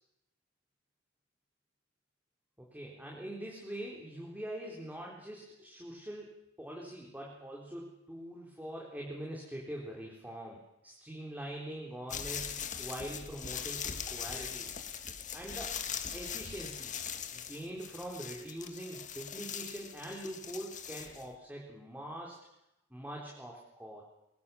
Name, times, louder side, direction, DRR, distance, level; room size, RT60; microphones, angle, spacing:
voice 1, 2.7-6.3 6.6-10.6 10.8-14.7 15.3-15.8 16.1-16.9 17.3-22.4 22.9-24.0, right 1 dB, 10° right, -2 dB, 3.9 m, -43 dB
sound 1, 12.1-21.3, left 7 dB, 40° left, 1.9 m, -41 dB
23.5 x 22.5 x 7.2 m, 0.87 s
head